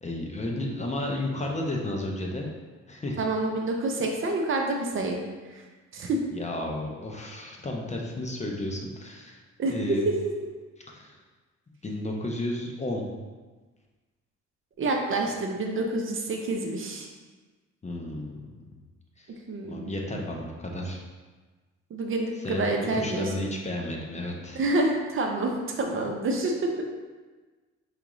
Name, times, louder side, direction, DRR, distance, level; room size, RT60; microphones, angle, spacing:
voice 1, 0.0-2.5 2.9-3.2 6.3-9.4 9.7-10.1 10.9-11.2 11.8-13.1 17.8-18.5 19.2-19.4 19.6-21.0 22.4-22.7 22.9-24.6, left 1 dB, 25° left, 0 dB, 0.6 m, -32 dB
voice 2, 3.2-5.2 5.9-6.2 9.6-10.2 14.8-17.1 19.5-20.0 21.9-23.5 24.5-26.8, right 2 dB, 45° right, 2 dB, 0.5 m, -28 dB
4.8 x 2.4 x 3.0 m, 1.3 s
cardioid pair, 90°, 30 cm